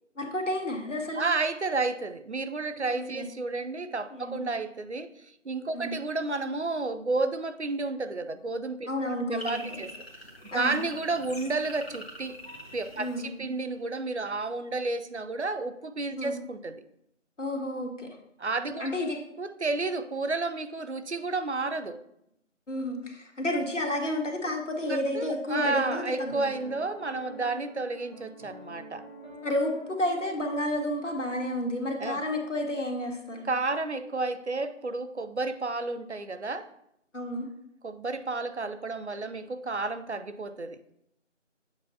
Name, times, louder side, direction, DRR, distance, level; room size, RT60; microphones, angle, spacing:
voice 1, 0.2-1.3 2.9-3.3 4.1-4.4 5.7-6.0 8.9-9.8 10.5-10.9 13.0-13.4 16.2-16.4 17.4-18.1 18.8-19.2 22.7-26.4 29.4-33.5 37.1-37.5, left 1 dB, 75° left, 1 dB, 1.6 m, -31 dB
voice 2, 1.1-5.1 5.4-9.9 10.5-12.4 12.7-16.8 18.4-22.0 24.9-29.0 32.0-32.2 33.4-36.7 37.8-40.8, right 3 dB, 65° right, 10 dB, 0.6 m, -31 dB
sound 1, 9.4-13.9, equal, 50° left, 1.4 m, -44 dB
Piano, 26.3-31.6, equal, 35° right, 1.6 m, -47 dB
7.9 x 5.5 x 2.7 m, 0.76 s
figure-of-eight pair, 175°, 38 cm